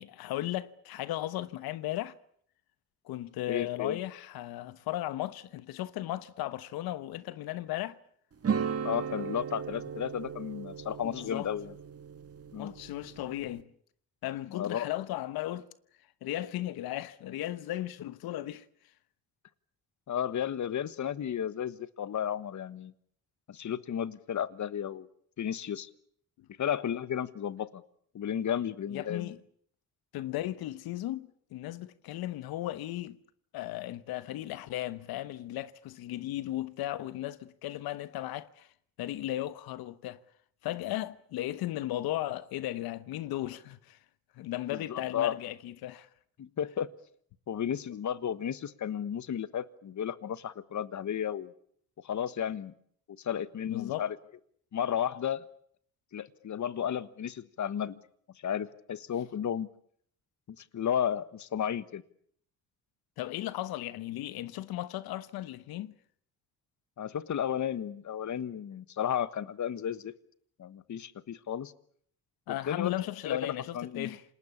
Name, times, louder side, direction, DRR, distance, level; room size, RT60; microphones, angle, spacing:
voice 1, 0.0-2.1 3.0-8.0 11.0-11.5 12.6-13.7 14.2-15.7 16.2-18.6 26.4-26.5 28.9-29.4 30.1-33.2 33.5-38.7 39.0-40.2 40.6-44.0 44.4-46.1 53.7-54.1 63.2-65.9 72.5-74.2, left 14 dB, 90° left, 1.1 m, -36 dB
voice 2, 3.5-4.0 8.8-11.7 12.5-12.7 14.5-14.9 20.1-22.9 23.5-25.1 25.4-25.9 26.6-27.8 28.1-29.3 44.7-45.4 46.4-46.9 47.5-51.5 52.0-52.7 53.2-54.2 54.7-55.4 56.1-58.0 58.4-59.7 60.5-62.0 67.0-70.1 70.6-71.7 72.7-72.9 73.3-74.2, left 9 dB, 50° left, 1.4 m, -33 dB
sound 1, 8.4-13.6, right 6 dB, 40° right, 1.9 m, -36 dB
28.0 x 20.0 x 8.6 m
cardioid pair, 85°, 36 cm